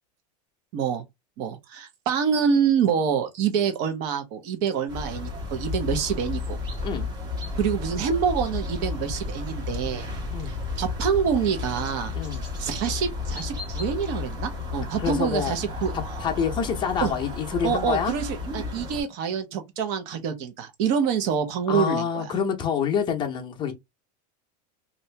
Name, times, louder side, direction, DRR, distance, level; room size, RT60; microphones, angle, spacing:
voice 1, 0.7-1.0 1.4-6.6 7.6-10.1 10.4-12.1 12.6-15.9 17.0-17.1 17.6-22.3, right 7 dB, 50° right, 1.0 m, -26 dB
sound 1, 4.9-19.0, left 3 dB, 20° right, 1.0 m, -32 dB
voice 2, 15.0-15.6 16.2-18.2 21.7-23.7, left 7 dB, 25° left, 0.7 m, -27 dB
2.8 x 2.6 x 3.3 m
supercardioid pair, 150°, 20 cm